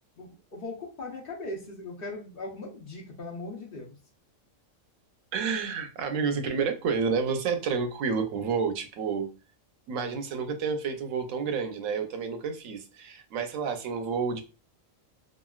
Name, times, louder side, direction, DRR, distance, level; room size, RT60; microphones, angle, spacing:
voice 1, 0.2-3.9, left 2 dB, 50° left, 0.9 m, -39 dB
voice 2, 5.3-9.3 9.9-14.4, right 5 dB, 85° right, 1.0 m, -30 dB
3.0 x 2.5 x 2.3 m
omnidirectional pair, 1.3 m